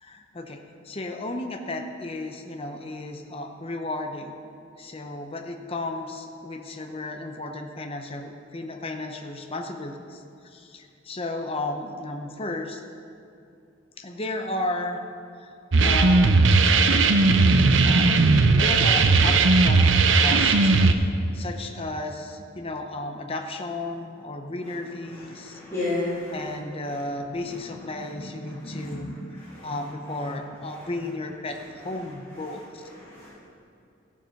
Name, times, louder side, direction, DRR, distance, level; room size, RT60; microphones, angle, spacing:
voice 1, 0.0-4.3 4.8-12.8 14.0-15.0 15.4-15.5 15.8-16.6 17.8-19.8 20.2-25.6 26.3-32.8, left 2 dB, 30° left, 4 dB, 0.7 m, -34 dB
sound 1, 15.7-20.9, right 3 dB, 65° right, 0.6 m, -17 dB
voice 2, 25.5-26.3 33.0-33.3, left 2 dB, 15° left, -14 dB, 3.1 m, -29 dB
14.5 x 7.3 x 5.8 m, 2.5 s
head